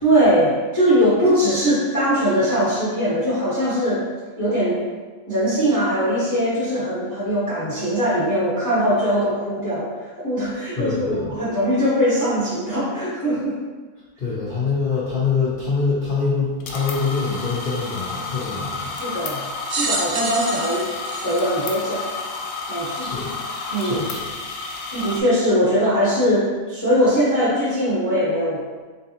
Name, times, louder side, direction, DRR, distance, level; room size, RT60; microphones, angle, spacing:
voice 1, 0.0-4.0 4.4-4.8 5.3-13.6 18.9-19.4 19.7-20.9 21.2-22.1 22.7-23.1 23.7-24.1 24.9-28.6, equal, 15° left, -9 dB, 0.8 m, -21 dB
voice 2, 10.8-11.3 14.2-18.9 23.0-23.3 23.8-24.2, left 4 dB, 50° left, -8 dB, 0.6 m, -24 dB
sound 1, 16.6-25.2, left 3 dB, 75° left, 1.1 m, -31 dB
sound 2, 19.7-22.3 23.0-23.1 24.3-24.4, right 3 dB, 65° right, 0.6 m, -28 dB
3.8 x 3.3 x 2.8 m, 1.4 s
omnidirectional pair, 1.6 m